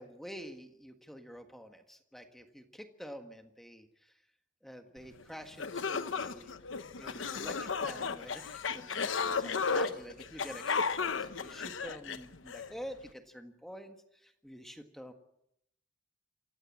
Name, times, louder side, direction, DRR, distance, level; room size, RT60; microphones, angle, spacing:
voice 1, 0.0-4.1 4.6-6.6 7.0-15.1, equal, ahead, 6 dB, 1.6 m, -48 dB
sound 1, 5.2-5.3 5.6-12.7, left 5 dB, 85° left, 1.0 m, -34 dB
27.0 x 16.0 x 7.5 m, 0.78 s
head